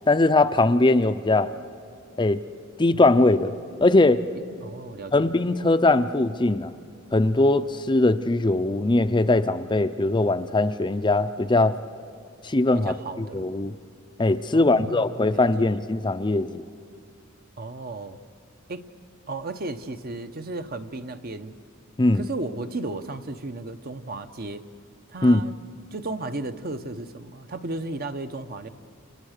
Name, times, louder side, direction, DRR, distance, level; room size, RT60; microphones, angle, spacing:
voice 1, 0.1-1.5 2.2-2.4 2.8-3.5 3.8-4.2 5.1-6.7 7.1-11.8 12.4-13.7 14.2-16.6 22.0-22.2 25.2-25.4, left 2 dB, 20° left, 10 dB, 0.6 m, -21 dB
voice 2, 4.6-5.3 12.7-13.5 14.5-15.7 17.6-18.2 18.7-18.9 19.3-21.5 22.1-24.6 25.1-25.5 25.9-28.7, right 2 dB, 45° right, 9 dB, 1.0 m, -34 dB
30.0 x 29.5 x 6.6 m, 2.4 s
head